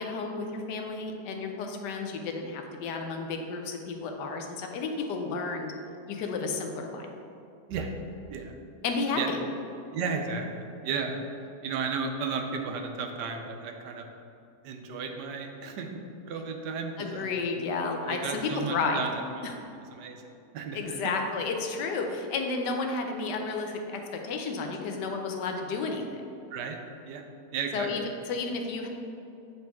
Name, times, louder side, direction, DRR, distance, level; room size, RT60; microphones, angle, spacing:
voice 1, 0.0-5.7 6.1-7.1 8.8-9.4 17.0-19.0 19.4-19.5 20.7-26.2 27.7-28.9, left 4 dB, 85° left, 3 dB, 1.3 m, -32 dB
voice 2, 9.9-11.2 11.6-14.1 14.6-15.9 16.3-17.4 18.0-19.5 19.9-21.0 26.5-26.8 27.0-27.3 27.5-28.1, right 5 dB, 85° right, 4 dB, 1.3 m, -34 dB
8.1 x 3.9 x 3.5 m, 2.7 s
omnidirectional pair, 1.8 m